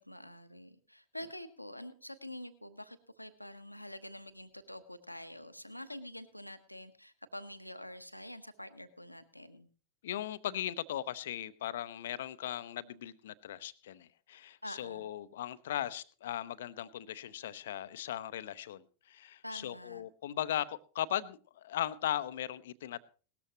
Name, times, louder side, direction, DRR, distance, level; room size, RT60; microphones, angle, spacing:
voice 1, 0.0-9.7 14.6-15.1 19.4-20.0, left 1 dB, 90° left, 11 dB, 1.0 m, -47 dB
voice 2, 10.0-23.0, left 11 dB, 60° left, 16 dB, 0.7 m, -38 dB
18.5 x 13.0 x 3.0 m, 0.37 s
figure-of-eight pair, 90°, 0 cm